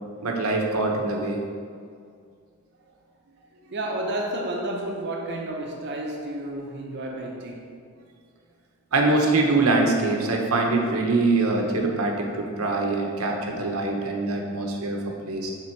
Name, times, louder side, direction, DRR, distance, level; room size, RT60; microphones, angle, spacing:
voice 1, 0.2-1.4 8.9-15.0 15.2-15.5, right 2 dB, 85° right, 1 dB, 0.8 m, -23 dB
voice 2, 3.6-7.7, right 1 dB, 55° right, 0 dB, 0.7 m, -31 dB
5.9 x 3.7 x 4.5 m, 2.2 s
head